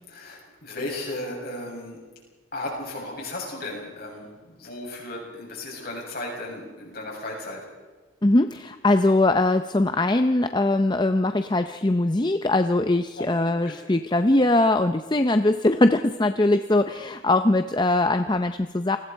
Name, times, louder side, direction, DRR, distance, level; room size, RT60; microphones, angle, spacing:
voice 1, 0.0-2.0 2.5-7.7 13.2-13.3 13.6-13.8, left 1 dB, 45° left, -2 dB, 7.6 m, -35 dB
voice 2, 8.2-19.0, left 2 dB, 20° left, 8 dB, 0.6 m, -21 dB
29.0 x 20.0 x 4.6 m, 1.3 s
head